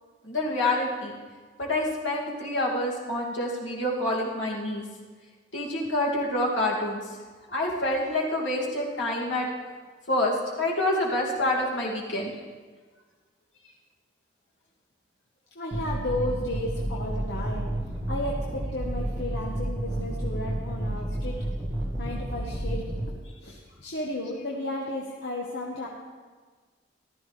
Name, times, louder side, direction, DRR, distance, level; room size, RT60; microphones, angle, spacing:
voice 1, 0.2-1.2 1.6-4.8 5.5-7.2 7.5-9.5 10.1-12.3, left 1 dB, 75° left, -3 dB, 2.4 m, -27 dB
voice 2, 15.5-17.7 18.1-21.4 22.0-23.0 23.4-25.9, left 1 dB, 60° left, -3 dB, 1.1 m, -33 dB
sound 1, 15.7-23.1, right 1 dB, 10° right, 1.8 m, -31 dB
14.5 x 12.5 x 3.3 m, 1.5 s
head